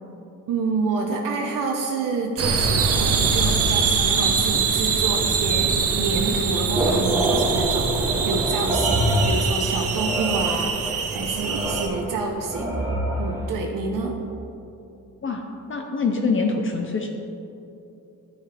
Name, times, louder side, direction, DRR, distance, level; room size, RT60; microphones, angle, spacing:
voice 1, 0.5-14.2, right 4 dB, 85° right, 1 dB, 0.9 m, -28 dB
sound 1, 2.4-11.9, right 5 dB, 50° right, 0.8 m, -23 dB
sound 2, 6.3-13.5, right 1 dB, 10° right, 1.1 m, -26 dB
voice 2, 15.2-17.1, left 4 dB, 40° left, 3 dB, 0.6 m, -25 dB
12.5 x 5.7 x 3.4 m, 2.9 s
cardioid pair, 125°, 32 cm